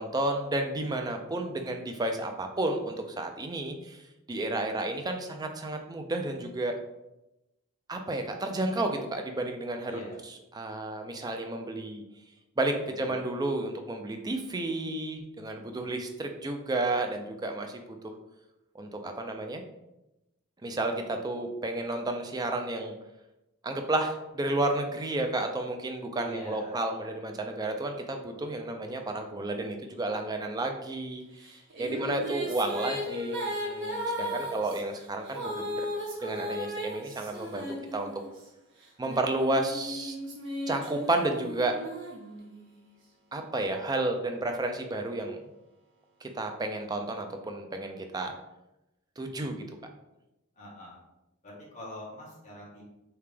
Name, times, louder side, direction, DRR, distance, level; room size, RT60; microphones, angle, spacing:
voice 1, 0.0-6.8 7.9-10.0 10.5-12.0 12.6-18.1 18.7-19.6 20.6-23.0 23.6-35.9 36.2-38.1 39.0-40.2 40.7-41.8 43.3-45.4 46.2-48.3 49.2-49.7, right 2 dB, 20° right, 4 dB, 0.4 m, -32 dB
voice 2, 9.9-10.2 13.0-13.3 26.2-26.9 31.8-32.2 32.4-32.9 34.1-34.7 50.6-51.0 51.4-52.8, equal, 35° left, -5 dB, 1.3 m, -44 dB
sound 1, 31.4-38.4 39.0-42.8, equal, 60° right, 0.9 m, -36 dB
3.4 x 2.8 x 3.3 m, 0.93 s
head